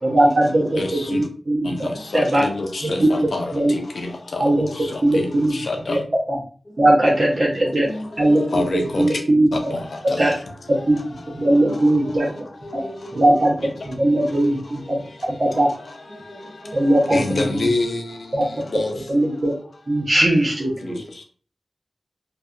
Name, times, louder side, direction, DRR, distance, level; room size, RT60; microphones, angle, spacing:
voice 1, 0.0-2.4 2.8-3.1 3.5-3.8 4.4-4.7 5.0-5.6 5.9-6.0 6.3-6.4 6.8-7.9 8.2-9.5 10.0-10.3 10.7-11.0 11.4-12.3 12.7-12.8 13.1-15.0 15.4-15.7 16.7-17.7 18.3-18.5 19.1-19.5 19.9-21.0, right 1 dB, 65° right, -4 dB, 0.7 m, -19 dB
voice 2, 0.8-1.2 1.7-1.8 2.1-3.5 4.0-4.5 5.1-5.2 5.7-6.0 8.5-9.0 9.7-9.8 10.1-10.2 17.1-18.0 18.7-18.9, left 3 dB, 85° left, 3 dB, 0.5 m, -25 dB
voice 3, 1.7-2.0 3.7-3.9 6.7-6.9 7.8-8.5 11.4-11.7 12.6-13.3 14.0-14.3 14.9-15.0 16.1-17.0 18.9-19.0, left 1 dB, 15° left, -5 dB, 1.1 m, -38 dB
2.6 x 2.3 x 2.3 m, 0.42 s
wide cardioid pair, 60°, 0 cm